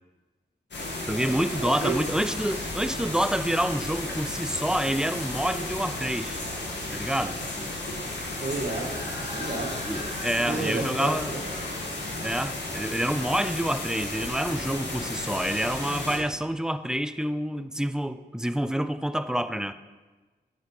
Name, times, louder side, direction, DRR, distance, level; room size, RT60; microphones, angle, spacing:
sound 1, 0.7-16.2, left 2 dB, 85° left, 1.9 m, -33 dB
voice 1, 1.0-6.4 6.9-7.4 9.9-11.3 12.2-19.7, equal, 5° right, 11 dB, 0.4 m, -28 dB
voice 2, 1.6-2.0 8.4-9.0 9.3-9.8 10.4-11.4, right 3 dB, 50° right, -1 dB, 2.2 m, -31 dB
8.0 x 7.4 x 4.8 m, 1.3 s
wide cardioid pair, 75°, 18 cm